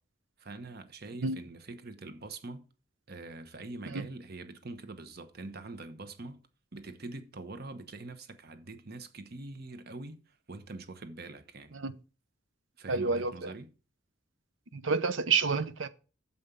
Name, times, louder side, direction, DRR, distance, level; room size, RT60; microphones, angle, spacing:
voice 1, 0.4-2.6 3.1-6.4 6.7-11.8 12.8-13.7, right 2 dB, 55° right, 1.1 m, -44 dB
voice 2, 12.9-13.5 14.7-15.9, right 4 dB, 80° right, 0.8 m, -29 dB
7.2 x 5.4 x 6.7 m
head